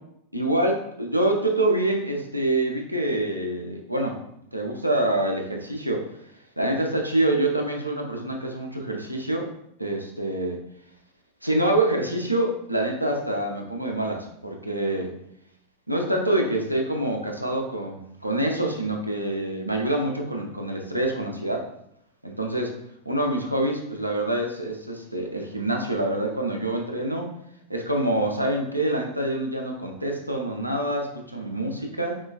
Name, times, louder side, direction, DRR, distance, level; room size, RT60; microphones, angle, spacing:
voice 1, 0.3-4.2 4.5-6.1 6.6-9.5 9.8-10.6 11.4-15.1 15.9-21.7 22.2-22.7 23.1-27.3 27.7-32.2, right 1 dB, 90° right, 1 dB, 0.5 m, -26 dB
4.3 x 2.2 x 2.3 m, 0.75 s
figure-of-eight pair, 90°, 0 cm